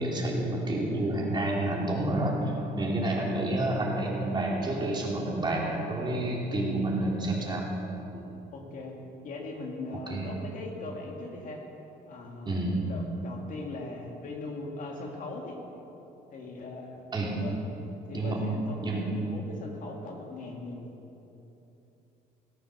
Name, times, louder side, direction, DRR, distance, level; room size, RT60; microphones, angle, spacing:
voice 1, 0.0-7.7 8.1-8.2 10.1-10.3 12.4-12.8 17.1-17.4 18.1-18.4 18.8-19.0, right 1 dB, 25° right, -3 dB, 3.3 m, -29 dB
voice 2, 8.5-8.9 9.2-11.6 12.1-12.6 12.8-15.6 16.3-17.0 17.3-17.7 18.1-20.9, left 2 dB, 50° left, 1 dB, 2.3 m, -40 dB
17.5 x 9.3 x 6.8 m, 3.0 s
cardioid pair, 110°, 17 cm